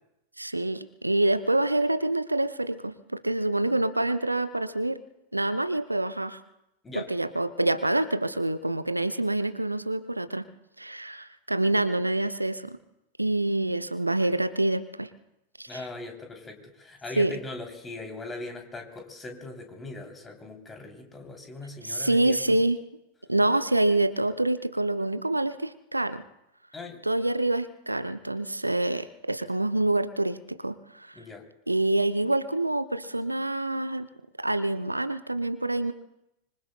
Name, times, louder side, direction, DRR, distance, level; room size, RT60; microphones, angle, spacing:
voice 1, 0.4-5.0 5.3-6.4 7.0-10.4 10.8-12.8 13.2-15.1 15.6-15.8 17.2-17.3 21.8-22.9 23.3-26.2 27.1-31.1 31.7-34.1 34.4-35.9, right 2 dB, 85° right, 12 dB, 0.6 m, -26 dB
voice 2, 15.7-22.6 26.7-27.0 31.1-31.4, left 2 dB, 15° left, 2 dB, 3.2 m, -40 dB
25.5 x 24.5 x 2.2 m, 0.87 s
figure-of-eight pair, 90°, 0 cm